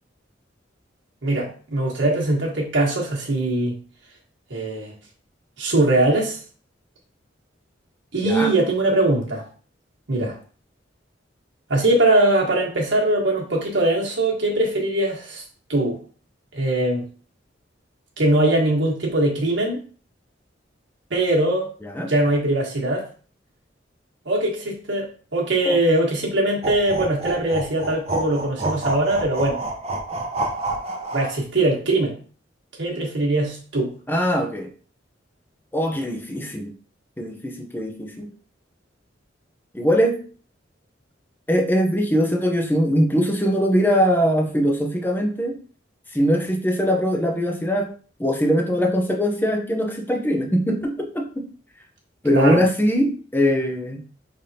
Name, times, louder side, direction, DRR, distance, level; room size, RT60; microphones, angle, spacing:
voice 1, 1.2-3.8 4.5-4.9 5.6-6.4 8.1-9.4 10.1-10.4 11.7-15.4 15.7-16.0 16.5-17.1 18.2-19.8 21.1-21.7 22.0-23.1 24.2-29.6 31.1-32.2 32.8-33.9 52.3-52.6, right 2 dB, 80° right, 1.4 m, -21 dB
sound 1, 26.6-31.4, right 2 dB, 35° right, 0.8 m, -28 dB
voice 2, 34.1-34.7 35.7-36.7 37.2-38.3 39.7-40.2 41.5-45.6 46.1-47.9 48.2-51.5 52.2-54.0, equal, 10° left, 0.7 m, -21 dB
5.5 x 3.4 x 2.8 m
head